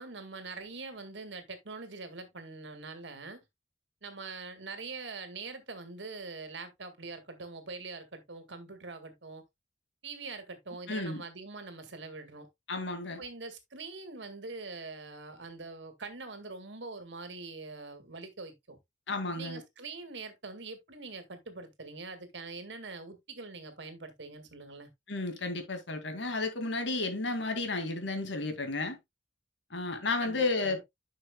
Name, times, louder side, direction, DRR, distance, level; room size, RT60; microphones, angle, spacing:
voice 1, 0.0-3.4 4.0-9.4 10.0-12.5 13.2-18.8 19.4-24.9 30.2-30.8, right 3 dB, 80° right, 1.9 m, -43 dB
voice 2, 10.9-11.2 12.7-13.2 19.1-19.6 25.1-29.0 29.7-30.8, left 3 dB, 80° left, 2.2 m, -32 dB
10.5 x 6.4 x 2.2 m
head